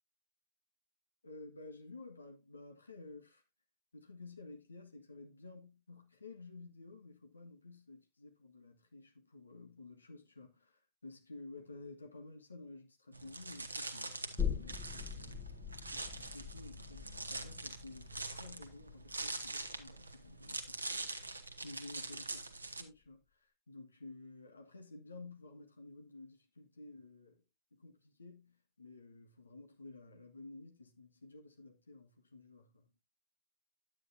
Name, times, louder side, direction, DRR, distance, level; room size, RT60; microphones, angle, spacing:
voice 1, 1.2-3.4 3.9-15.5 15.9-27.4 27.7-32.9, left 3 dB, 80° left, 1.5 m, -53 dB
sound 1, 13.1-22.8, right 2 dB, 80° right, 1.0 m, -44 dB
sound 2, 14.4-21.7 22.0-22.1, left 8 dB, 20° left, 1.3 m, -43 dB
9.5 x 8.8 x 2.6 m
figure-of-eight pair, 90°, 0 cm